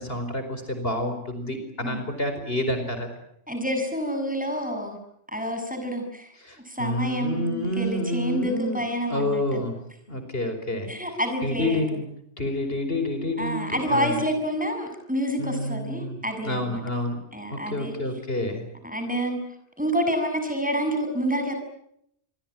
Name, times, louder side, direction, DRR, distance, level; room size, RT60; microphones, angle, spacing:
voice 1, 0.0-3.1 6.4-8.8 9.1-9.7 10.1-10.9 11.4-12.0 12.4-14.2 15.4-17.2 17.5-18.6, left 1 dB, 55° left, 7 dB, 5.0 m, -28 dB
voice 2, 3.5-5.0 5.3-6.4 6.7-9.6 10.9-12.0 13.4-16.8 17.3-18.0 18.8-19.4 19.8-21.5, equal, 5° right, 4 dB, 7.1 m, -28 dB
27.5 x 23.5 x 9.0 m, 0.74 s
omnidirectional pair, 1.2 m